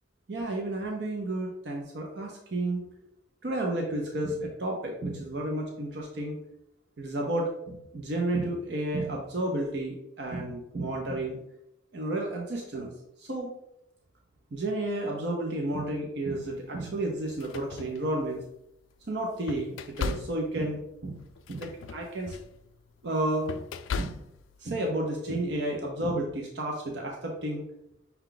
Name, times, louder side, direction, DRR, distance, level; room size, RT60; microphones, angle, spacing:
voice 1, 0.3-2.9 3.4-6.4 7.0-11.4 11.9-12.9 13.2-13.5 14.5-18.4 19.1-21.2 21.5-22.4 23.0-23.5 24.0-24.1 24.6-27.6, right 1 dB, 60° right, 0 dB, 0.6 m, -31 dB
sound 1, 16.4-16.5 17.2-18.6 19.0-24.6, left 4 dB, 85° left, 0.3 m, -38 dB
5.7 x 2.3 x 3.8 m, 0.81 s
head